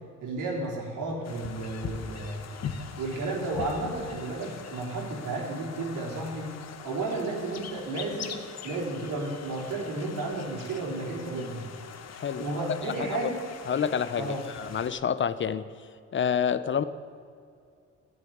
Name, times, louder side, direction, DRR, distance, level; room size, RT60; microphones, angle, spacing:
voice 1, 0.2-2.4 3.0-6.5 6.8-8.4 8.6-11.6 12.4-13.4 14.2-14.4, right 2 dB, 85° right, -2 dB, 3.6 m, -32 dB
sound 1, 1.2-14.9, left 6 dB, 60° left, 1.2 m, -42 dB
voice 2, 12.2-12.5 13.0-13.3 13.7-15.7 16.1-16.8, left 7 dB, 40° left, 14 dB, 0.6 m, -28 dB
13.0 x 7.3 x 9.5 m, 2.3 s
cardioid pair, 90°, 30 cm